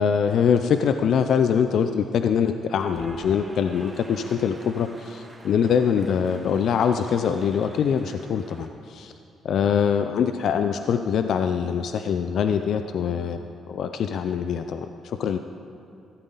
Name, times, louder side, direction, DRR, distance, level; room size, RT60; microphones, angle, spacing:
voice 1, 0.0-9.1 9.4-13.4 13.7-15.4, left 7 dB, 70° left, 8 dB, 0.5 m, -23 dB
Cheering / Applause, 2.4-8.7, right 2 dB, 15° right, 1.6 m, -47 dB
15.5 x 12.5 x 4.0 m, 2.6 s
cardioid pair, 90°, 0 cm